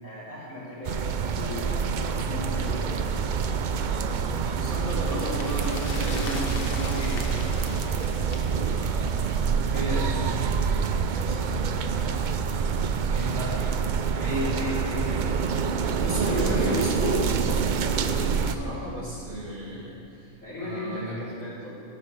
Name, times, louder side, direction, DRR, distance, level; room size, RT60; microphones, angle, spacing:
voice 1, 0.0-1.1 1.3-2.9 11.9-12.3 16.3-16.8 20.4-21.7, left 1 dB, 70° left, -8 dB, 3.7 m, -38 dB
sound 1, 0.8-18.6, right 6 dB, 70° right, 0.4 m, -27 dB
sound 2, 4.2-9.7 9.9-10.0, left 2 dB, 45° left, 1.3 m, -40 dB
voice 2, 4.5-7.7 8.6-10.6 11.2-11.6 13.1-13.6 14.1-15.3 16.0-17.3 17.7-20.3 20.6-21.2, equal, 40° right, -6 dB, 2.4 m, -33 dB
13.5 x 11.5 x 3.3 m, 2.7 s
omnidirectional pair, 1.4 m